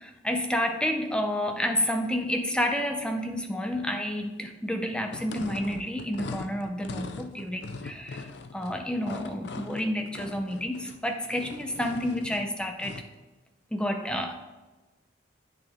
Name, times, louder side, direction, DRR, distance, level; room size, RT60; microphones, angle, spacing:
voice 1, 0.0-13.0 13.7-14.3, equal, 5° left, 5 dB, 0.6 m, -30 dB
sound 1, 5.1-13.2, left 3 dB, 60° left, 0.5 m, -41 dB
8.4 x 6.3 x 3.5 m, 1.2 s
head